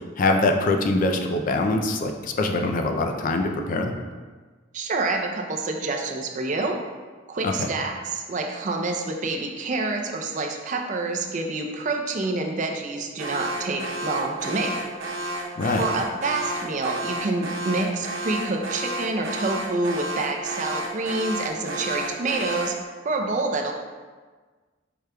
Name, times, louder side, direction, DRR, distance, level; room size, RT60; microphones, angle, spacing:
voice 1, 0.2-3.9 7.4-7.5 15.6-15.9, left 2 dB, 45° left, 4 dB, 0.4 m, -23 dB
voice 2, 4.7-6.8 7.3-14.7 15.8-22.7 23.0-23.7, right 3 dB, 40° right, 2 dB, 0.5 m, -27 dB
Alarm, 13.2-22.9, right 1 dB, 90° right, 0.6 m, -32 dB
5.0 x 4.6 x 2.2 m, 1.4 s
head